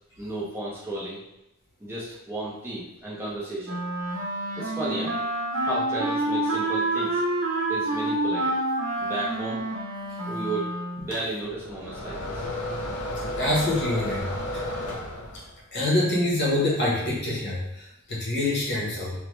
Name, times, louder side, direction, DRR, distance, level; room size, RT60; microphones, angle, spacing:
voice 1, 0.2-1.2 1.8-3.8 4.6-5.2 5.6-7.2 7.7-8.6 9.0-9.7 10.3-12.4, right 2 dB, 10° right, -7 dB, 0.5 m, -33 dB
Wind instrument woodwind instrument, 3.6-11.2, right 1 dB, 75° right, 0.8 m, -28 dB
sound 1, 11.1-15.6, left 1 dB, 80° left, 0.6 m, -33 dB
voice 2, 13.4-14.2 14.5-14.6 15.7-19.1, left 1 dB, 50° left, -4 dB, 0.9 m, -25 dB
3.0 x 2.1 x 3.1 m, 0.88 s
head